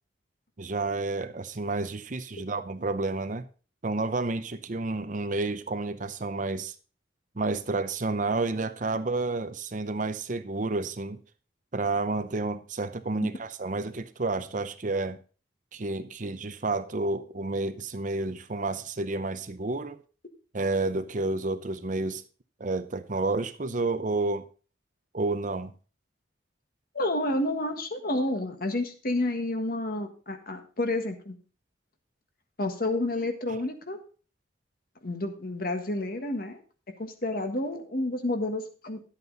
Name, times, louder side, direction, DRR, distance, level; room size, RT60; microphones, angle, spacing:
voice 1, 0.6-3.5 3.8-6.7 7.4-11.2 11.7-15.2 15.7-20.0 20.5-22.2 22.6-24.5 25.1-25.7, right 3 dB, 45° right, 0.7 m, -30 dB
voice 2, 26.9-31.4 32.6-34.0 35.0-36.6 37.0-39.0, left 1 dB, 50° left, 1.6 m, -30 dB
11.5 x 8.2 x 4.0 m
head